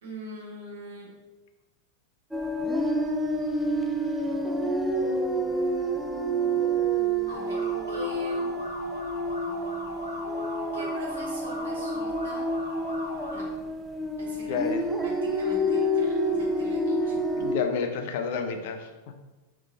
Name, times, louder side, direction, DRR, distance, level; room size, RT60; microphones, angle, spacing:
voice 1, 0.0-1.1 7.2-8.6 10.7-12.4 13.3-13.5 14.2-14.6 15.0-17.2 17.4-17.5, right 1 dB, 65° right, -3 dB, 1.3 m, -43 dB
sound 1, 2.3-17.6, right 1 dB, 5° right, 0.4 m, -28 dB
sound 2, 7.3-13.4, equal, 90° right, 1.3 m, -39 dB
voice 2, 14.5-14.8 17.4-19.1, left 5 dB, 50° left, 6 dB, 0.5 m, -30 dB
3.6 x 3.1 x 3.9 m, 1.1 s
figure-of-eight pair, 90°, 0 cm